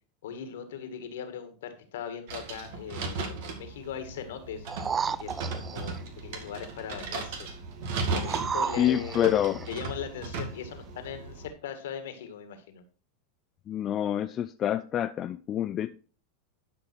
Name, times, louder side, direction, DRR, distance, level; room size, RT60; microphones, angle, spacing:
voice 1, 0.2-4.7 5.2-7.4 8.1-12.8, left 8 dB, 75° left, 8 dB, 1.9 m, -39 dB
sound 1, 2.3-11.5, right 3 dB, 65° right, 2.1 m, -36 dB
sound 2, 4.7-6.0 8.1-9.7 10.3-10.4, right 6 dB, 25° right, 0.4 m, -33 dB
voice 2, 8.8-9.7 13.7-15.9, left 11 dB, 35° left, 10 dB, 0.5 m, -27 dB
11.5 x 5.4 x 4.5 m, 0.38 s
hypercardioid pair, 105°, 0 cm